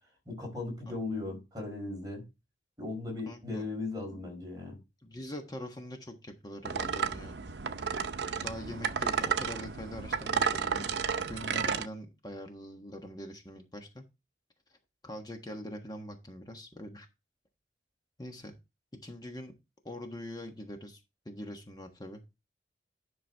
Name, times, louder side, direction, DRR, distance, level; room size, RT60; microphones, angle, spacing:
voice 1, 0.3-2.2 2.8-4.8, left 3 dB, 20° right, 4.9 m, -37 dB
voice 2, 3.2-3.6 5.0-7.4 8.4-11.0 11.3-14.0 14.7-14.8 15.0-17.1 18.2-18.5 19.0-19.5 19.8-22.2, equal, 20° left, 1.4 m, -43 dB
sound 1, 6.7-11.9, right 6 dB, 70° right, 0.7 m, -32 dB
11.0 x 6.1 x 3.5 m
head